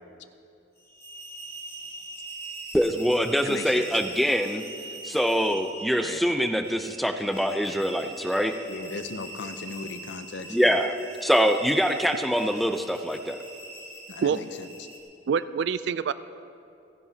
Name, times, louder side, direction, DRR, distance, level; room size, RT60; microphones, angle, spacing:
sound 1, 0.8-15.0, right 2 dB, 15° left, 2.3 m, -42 dB
voice 1, 2.7-4.6 5.0-8.6 10.5-10.9 11.2-13.4, equal, ahead, 6 dB, 0.5 m, -24 dB
voice 2, 3.4-3.9 6.0-6.2 8.7-10.8 14.1-14.9, left 3 dB, 65° left, 9 dB, 0.7 m, -37 dB
voice 3, 15.3-16.1, right 6 dB, 65° right, 14 dB, 0.4 m, -25 dB
28.5 x 10.5 x 2.8 m, 2.5 s
head